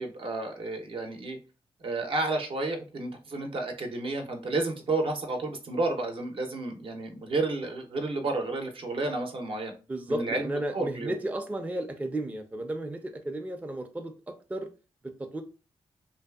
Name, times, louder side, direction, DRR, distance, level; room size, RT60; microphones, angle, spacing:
voice 1, 0.0-1.4 1.8-9.7 10.1-11.1, right 2 dB, 60° right, 0.6 m, -31 dB
voice 2, 9.9-14.7 15.0-15.4, right 1 dB, 15° right, 0.4 m, -34 dB
2.6 x 2.3 x 2.3 m
cardioid pair, 75°, 10 cm